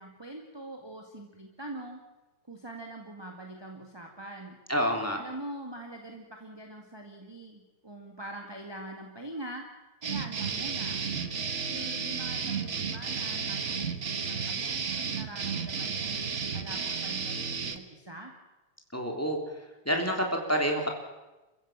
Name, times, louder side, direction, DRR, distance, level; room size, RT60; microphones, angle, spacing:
voice 1, 0.0-2.0 2.5-4.6 5.1-9.7 10.0-11.1 11.6-18.3, right 1 dB, 10° right, 2 dB, 1.6 m, -43 dB
voice 2, 4.7-5.2 18.9-19.4 19.8-20.9, equal, 5° left, 2 dB, 3.2 m, -28 dB
sound 1, 10.0-17.8, right 5 dB, 50° right, 0.8 m, -33 dB
28.5 x 15.5 x 7.5 m, 1.1 s
omnidirectional pair, 3.3 m